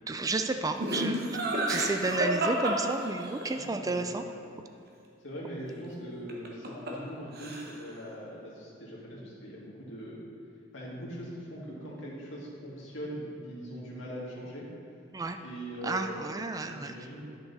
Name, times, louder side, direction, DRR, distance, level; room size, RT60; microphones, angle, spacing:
voice 1, 0.1-1.3 1.5-4.2 15.1-15.4 15.8-17.0, right 3 dB, 20° right, 7 dB, 0.3 m, -31 dB
Laughter, 0.8-3.5 6.3-7.1 7.3-7.9, right 1 dB, 55° right, 1.1 m, -30 dB
voice 2, 3.5-4.1 4.4-4.5 5.2-10.2 10.7-14.7 15.4-17.3, equal, 75° left, -5 dB, 2.2 m, -41 dB
10.5 x 5.9 x 4.1 m, 2.5 s
head